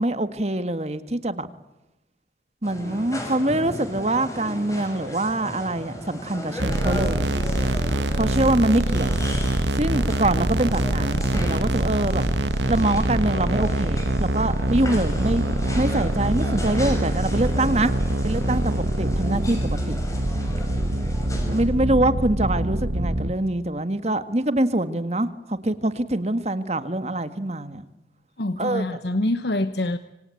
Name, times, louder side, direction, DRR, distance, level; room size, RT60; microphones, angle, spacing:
voice 1, 0.0-1.5 2.6-7.3 8.1-9.2 9.8-12.2 12.7-15.4 15.8-17.9 18.2-19.6 19.9-20.0 21.5-27.8 28.6-28.8, right 1 dB, 35° right, 11 dB, 1.7 m, -24 dB
sound 1, 2.6-21.6, equal, 20° left, 6.2 m, -35 dB
sound 2, 6.6-23.3, right 1 dB, 85° right, 1.5 m, -24 dB
voice 2, 28.4-30.0, left 1 dB, 70° left, 12 dB, 1.1 m, -25 dB
26.5 x 25.5 x 8.5 m, 0.95 s
head